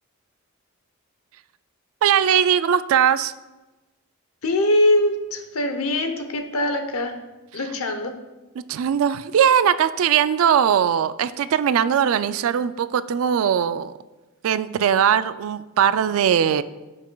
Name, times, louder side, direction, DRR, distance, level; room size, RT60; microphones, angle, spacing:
voice 1, 2.0-3.3 8.6-13.9 14.4-16.6, right 8 dB, 65° right, 14 dB, 0.3 m, -20 dB
voice 2, 4.4-7.2 7.5-8.1, left 1 dB, 80° left, 7 dB, 0.8 m, -22 dB
12.0 x 5.8 x 2.3 m, 1.1 s
head